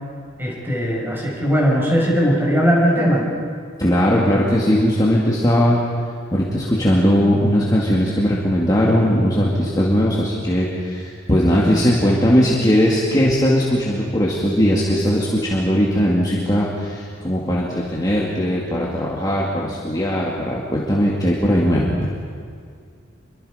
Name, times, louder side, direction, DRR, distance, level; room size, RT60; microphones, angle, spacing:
voice 1, 0.4-3.2, equal, 10° right, -2 dB, 5.8 m, -18 dB
voice 2, 3.8-5.8 6.3-21.9, equal, 20° left, -5 dB, 2.4 m, -19 dB
27.0 x 23.5 x 5.2 m, 2.1 s
head